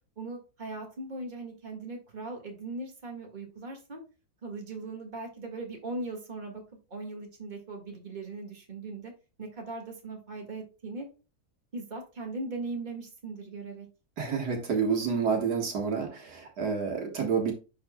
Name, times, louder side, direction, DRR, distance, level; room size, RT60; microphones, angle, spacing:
voice 1, 0.2-4.0 4.4-6.6 6.9-9.1 9.4-11.1 11.7-13.9, right 3 dB, 30° right, 1.8 m, -39 dB
voice 2, 14.2-17.5, right 6 dB, 90° right, 2.2 m, -29 dB
11.0 x 4.3 x 2.3 m
omnidirectional pair, 1.7 m